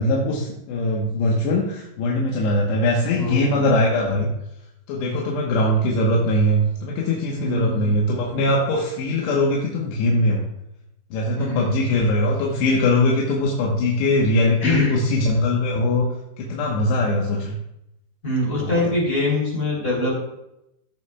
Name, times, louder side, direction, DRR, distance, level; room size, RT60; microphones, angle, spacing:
voice 1, 0.0-4.3 4.9-10.4 11.1-16.1 16.4-17.6 18.6-18.8, left 1 dB, 75° left, -3 dB, 3.0 m, -21 dB
voice 2, 3.2-3.7 7.3-8.0 11.3-11.8 14.6-15.0 18.2-20.2, left 2 dB, 25° left, -4 dB, 2.9 m, -24 dB
17.0 x 7.1 x 2.3 m, 0.84 s
omnidirectional pair, 5.4 m